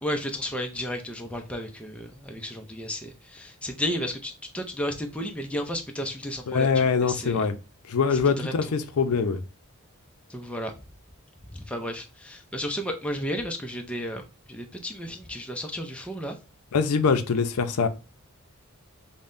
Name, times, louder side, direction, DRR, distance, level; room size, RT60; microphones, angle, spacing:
voice 1, 0.0-7.5 8.4-8.5 10.3-10.7 11.5-14.2 14.5-16.3, equal, 5° left, 0.4 m, -33 dB
voice 2, 6.5-7.5 7.9-9.4 16.7-17.9, left 5 dB, 80° left, 0.5 m, -23 dB
5.4 x 2.1 x 2.5 m
head